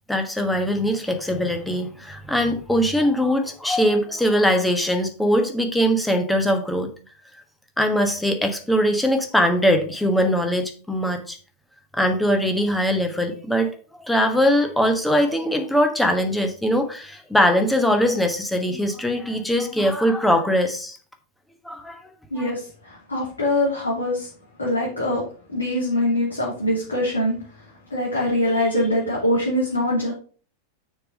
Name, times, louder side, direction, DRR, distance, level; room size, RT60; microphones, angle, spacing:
voice 1, 0.1-6.9 7.8-11.4 11.9-21.0 21.6-22.0, equal, 5° left, 5 dB, 1.2 m, -21 dB
voice 2, 22.3-24.3 24.6-25.2 25.5-30.1, left 1 dB, 75° left, -6 dB, 2.8 m, -23 dB
6.6 x 4.8 x 5.1 m, 0.40 s
figure-of-eight pair, 90°, 0 cm